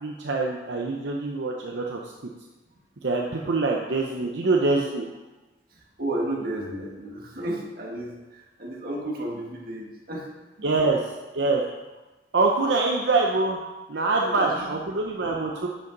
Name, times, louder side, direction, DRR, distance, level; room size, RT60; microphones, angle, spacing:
voice 1, 0.0-2.1 3.0-5.1 10.6-11.6 12.3-13.6 13.9-15.7, right 3 dB, 75° right, 0 dB, 0.7 m, -24 dB
voice 2, 6.0-10.3 14.2-14.7 15.3-15.4, right 1 dB, 55° right, -1 dB, 1.6 m, -32 dB
10.5 x 5.5 x 4.0 m, 1.1 s
head